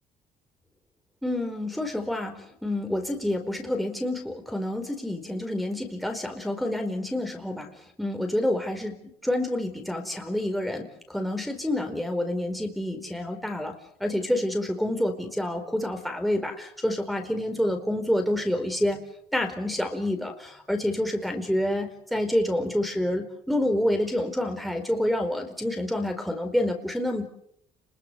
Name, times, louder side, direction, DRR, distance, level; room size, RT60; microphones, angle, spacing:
voice 1, 1.2-7.7 8.0-13.7 14.0-19.0 19.3-27.3, left 1 dB, ahead, 3 dB, 4.6 m, -28 dB
30.0 x 21.5 x 7.0 m, 0.71 s
cardioid pair, 110°, 17 cm